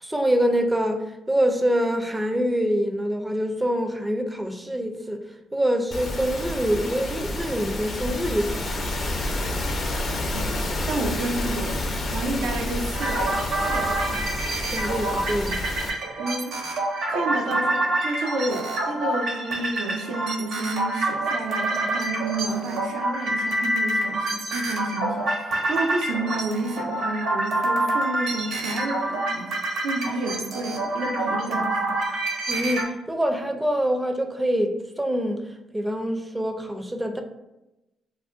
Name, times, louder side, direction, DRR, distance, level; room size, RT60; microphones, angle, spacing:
voice 1, 0.0-5.2 5.5-8.9 14.7-15.6 32.5-35.4 35.7-37.2, equal, 10° right, 5 dB, 0.4 m, -25 dB
sound 1, 5.9-15.9, left 1 dB, 45° left, 0.5 m, -29 dB
voice 2, 10.9-14.2 16.2-16.8 17.1-29.5 29.8-32.0, right 2 dB, 85° right, 1 dB, 0.4 m, -30 dB
sound 2, 12.9-32.8, right 2 dB, 70° right, 0.9 m, -27 dB
2.4 x 2.1 x 3.5 m, 0.93 s
cardioid pair, 90°, 0 cm